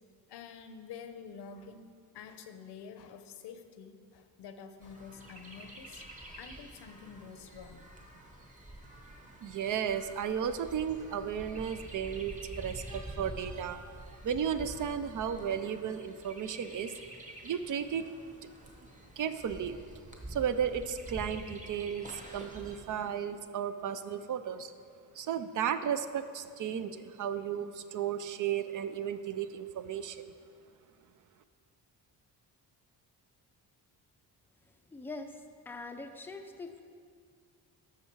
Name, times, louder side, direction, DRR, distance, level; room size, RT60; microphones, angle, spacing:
voice 1, 0.3-7.8, left 6 dB, 80° left, 8 dB, 0.8 m, -48 dB
Chirp tweet, 4.8-22.8, right 1 dB, 20° right, 1.0 m, -48 dB
voice 2, 9.4-13.9 14.2-16.9 17.4-18.0 19.2-19.8 20.3-24.7 25.1-30.2, right 8 dB, 50° right, 11 dB, 0.5 m, -34 dB
voice 3, 34.7-36.8, left 3 dB, 5° left, 5 dB, 0.4 m, -44 dB
12.5 x 6.4 x 4.6 m, 2.2 s
wide cardioid pair, 160°, 40 cm